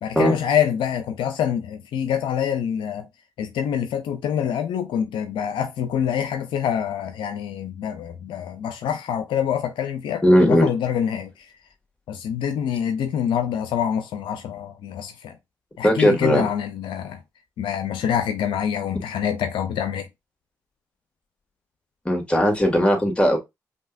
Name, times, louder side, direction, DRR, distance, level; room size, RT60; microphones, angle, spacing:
voice 1, 0.0-3.1 3.4-11.5 12.1-15.4 15.8-17.2 17.6-20.1, left 9 dB, 80° left, 0.5 m, -26 dB
voice 2, 10.2-10.7 15.8-16.4 22.1-23.4, equal, 15° left, 2.1 m, -18 dB
5.4 x 2.7 x 2.5 m
supercardioid pair, 45°, 8 cm